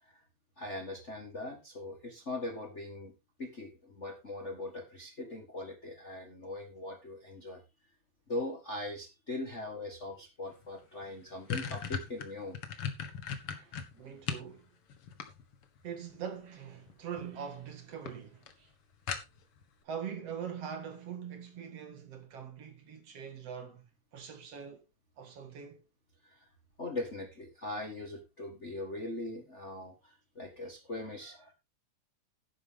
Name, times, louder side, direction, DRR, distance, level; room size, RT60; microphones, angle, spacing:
voice 1, 0.6-3.1 3.4-7.6 8.3-12.6 13.9-14.1 26.2-26.5 26.8-31.5, left 2 dB, 30° left, 1.5 m, -41 dB
sound 1, 10.6-10.7 11.0-14.5 14.9-15.8 16.9-17.3 17.6-17.7 18.1-18.2 18.5-18.6 19.1-19.6, left 7 dB, 55° left, 2.2 m, -37 dB
voice 2, 13.5-14.7 15.8-18.7 19.8-23.8 24.1-24.8 25.2-25.8, right 7 dB, 60° right, 2.7 m, -43 dB
11.5 x 10.0 x 3.6 m
omnidirectional pair, 3.3 m